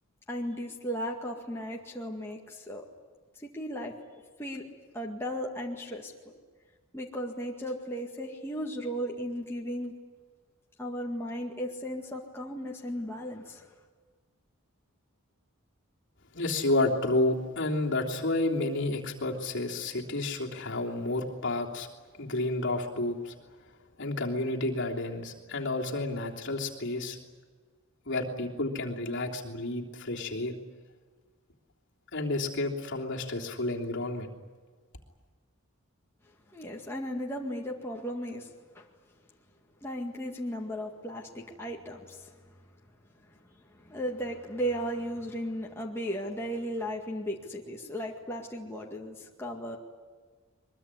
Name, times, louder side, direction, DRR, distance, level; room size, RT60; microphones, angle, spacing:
voice 1, 0.3-2.9 3.4-3.9 4.4-4.6 4.9-6.1 6.9-9.9 10.8-13.7 36.5-38.9 39.8-42.3 43.7-49.8, equal, 10° left, -2 dB, 2.0 m, -36 dB
voice 2, 16.3-21.9 22.2-23.3 24.0-27.2 28.1-30.5 32.1-34.3, left 2 dB, 55° left, -1 dB, 3.3 m, -30 dB
23.0 x 22.5 x 9.9 m, 1.5 s
head